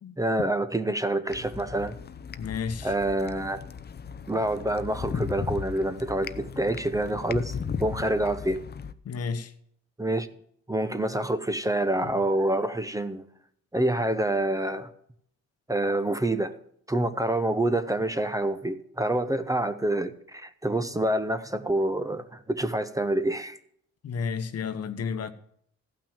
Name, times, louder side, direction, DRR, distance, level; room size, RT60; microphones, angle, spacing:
voice 1, 0.2-2.0 2.8-3.6 4.3-7.5 7.8-8.6 10.0-10.3 10.7-13.2 13.7-14.9 15.7-16.5 16.9-23.6, right 1 dB, 10° right, 0.8 m, -27 dB
sound 1, 1.3-8.9, left 6 dB, 35° left, 0.7 m, -36 dB
voice 2, 2.4-2.9 9.0-9.5 24.0-25.3, left 6 dB, 55° left, 1.1 m, -32 dB
14.5 x 5.9 x 8.9 m
cardioid pair, 90°, 30 cm